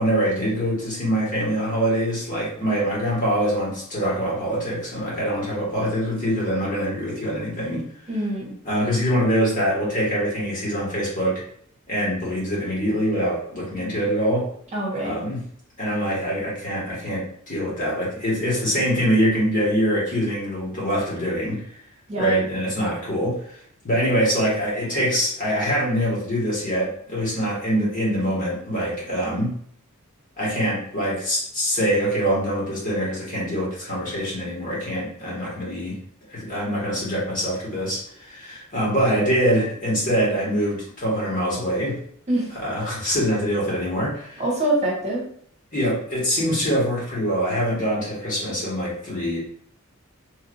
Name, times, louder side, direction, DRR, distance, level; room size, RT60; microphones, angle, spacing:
voice 1, 0.0-7.8 8.6-11.4 11.9-14.5 15.0-15.4 15.8-21.7 22.2-23.6 23.8-29.6 30.4-36.0 36.3-42.0 42.6-44.4 45.7-49.4, equal, 40° left, -6 dB, 1.5 m, -24 dB
voice 2, 8.1-8.5 14.7-15.2 22.1-22.3 42.3-42.5 44.4-45.2, right 1 dB, 30° right, -4 dB, 0.9 m, -24 dB
3.2 x 2.7 x 2.5 m, 0.63 s
head